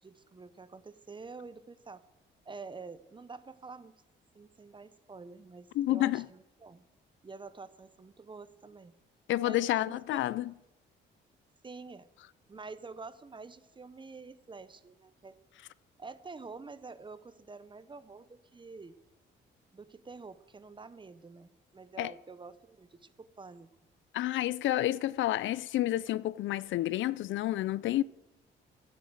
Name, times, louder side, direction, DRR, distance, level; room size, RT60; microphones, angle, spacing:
voice 1, 0.0-2.0 2.4-3.9 4.3-6.8 7.2-8.9 9.4-10.2 11.6-12.1 12.5-15.4 16.0-19.0 19.7-23.7, right 4 dB, 25° right, 0.9 m, -48 dB
voice 2, 5.8-6.3 9.3-10.5 22.0-22.1 24.1-28.0, left 14 dB, 75° left, 0.4 m, -29 dB
12.5 x 8.8 x 8.0 m
cardioid pair, 90°, 20 cm